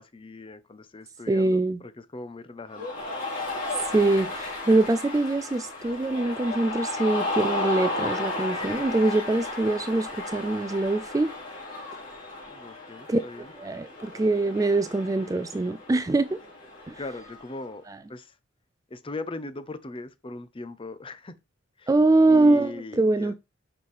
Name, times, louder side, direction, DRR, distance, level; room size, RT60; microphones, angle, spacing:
voice 1, 0.0-3.1 12.5-13.5 17.0-17.8 18.1-18.3 18.9-21.3 21.8-21.9 22.3-23.3, left 2 dB, 25° left, 0.6 m, -39 dB
voice 2, 1.3-1.8 3.9-11.3 13.1-13.2 13.6-16.4 16.9-17.0 17.9-18.0 21.9-23.3, right 2 dB, 15° right, 0.3 m, -23 dB
Cheering, 2.7-17.5, left 2 dB, 40° left, 4.2 m, -34 dB
6.8 x 5.4 x 3.2 m
head